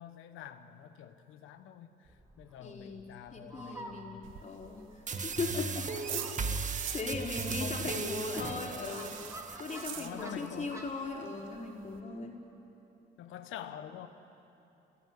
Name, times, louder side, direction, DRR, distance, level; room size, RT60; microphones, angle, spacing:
voice 1, 0.0-2.1 2.4-4.3 6.9-7.1 7.6-9.1 9.5-9.6 9.9-10.8 13.2-14.1, left 10 dB, 90° left, 1.3 m, -46 dB
Fowl, 2.0-11.1, right 1 dB, 15° right, 3.4 m, -51 dB
voice 2, 2.6-3.1 3.3-4.9 5.2-6.6 6.9-9.2 9.6-12.4, left 3 dB, 40° left, 4.7 m, -39 dB
sound 1, 4.2-7.1 7.4-10.6 10.8-10.9 11.3-11.4 11.5-12.0, right 11 dB, 80° right, 1.4 m, -44 dB
sound 2, 5.1-10.1, right 4 dB, 40° right, 1.6 m, -37 dB
29.5 x 19.0 x 9.9 m
cardioid pair, 90°, 20 cm